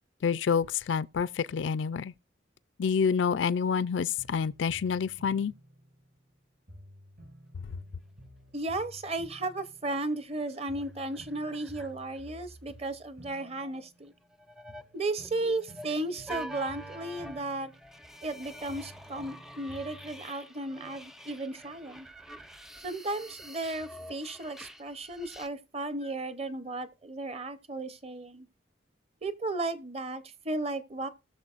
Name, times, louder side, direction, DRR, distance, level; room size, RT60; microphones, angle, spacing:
voice 1, 0.2-2.1 2.8-5.5, left 6 dB, 70° left, 0.4 m, -28 dB
sound 1, 4.2-6.3 6.7-10.4 10.7-14.3 14.7-18.4 18.7-20.3, equal, 60° right, 5.9 m, -52 dB
voice 2, 8.5-14.1 14.9-17.7 18.2-22.1 22.8-28.5 29.2-31.1, right 2 dB, 30° right, 0.8 m, -35 dB
sound 2, 9.3-9.8 10.0-10.1 10.4-12.2 14.2-25.5, right 1 dB, ahead, 0.4 m, -47 dB
19.0 x 6.6 x 2.5 m
head